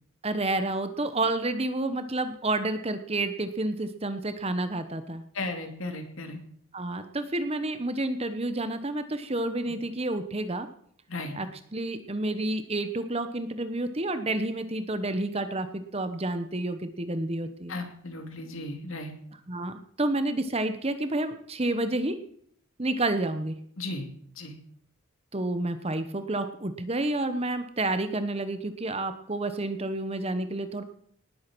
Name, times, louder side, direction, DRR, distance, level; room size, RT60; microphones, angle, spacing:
voice 1, 0.2-5.2 6.7-10.7 11.3-17.8 19.5-22.2 22.8-23.5 25.3-30.8, right 2 dB, 25° right, 9 dB, 1.0 m, -30 dB
voice 2, 5.3-6.4 9.7-9.8 11.1-11.3 17.7-19.1 23.8-24.1 24.3-24.6, left 2 dB, 65° left, 5 dB, 2.7 m, -35 dB
19.0 x 8.5 x 6.2 m, 0.64 s
head